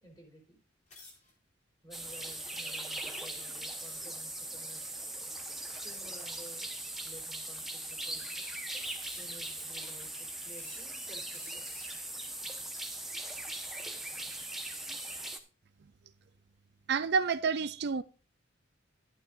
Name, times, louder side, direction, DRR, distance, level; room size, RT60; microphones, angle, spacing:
voice 1, 0.0-0.6 1.8-5.1 5.8-6.7 7.0-8.5 9.2-11.6, right 1 dB, 20° left, 3.9 m, -54 dB
sound 1, 0.9-1.3 2.0-2.2 3.2-4.2 6.3-6.7 7.5-7.6 8.1-8.5 9.0-9.6 10.5-11.0 11.3-12.0 12.5-13.2, left 3 dB, 40° left, 4.1 m, -54 dB
sound 2, 1.9-15.4, right 1 dB, ahead, 1.1 m, -40 dB
sound 3, 8.6-10.0, equal, 60° left, 6.9 m, -59 dB
voice 2, 16.9-18.0, right 5 dB, 55° right, 0.4 m, -29 dB
11.5 x 11.5 x 2.6 m
head